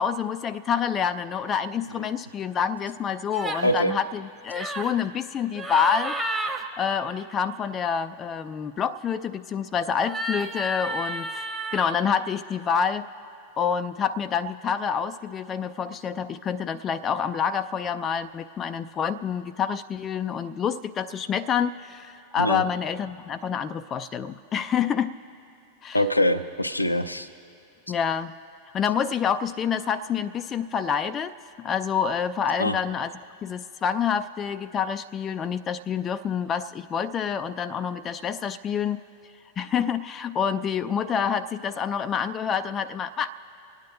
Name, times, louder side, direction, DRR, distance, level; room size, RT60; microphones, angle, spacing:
voice 1, 0.0-6.2 6.8-11.4 11.7-13.1 13.6-25.1 25.8-26.0 27.9-28.3 28.7-33.1 33.4-39.0 39.6-43.4, left 7 dB, 25° left, 11 dB, 0.4 m, -27 dB
sound 1, 3.3-3.7 4.5-4.9 5.5-6.6 10.0-12.0, right 1 dB, 5° right, 1.1 m, -31 dB
voice 2, 3.6-3.9 22.4-22.6 25.9-27.3 32.6-32.8, equal, 85° left, 8 dB, 0.6 m, -23 dB
25.5 x 9.4 x 3.8 m, 2.9 s
figure-of-eight pair, 90°, 0 cm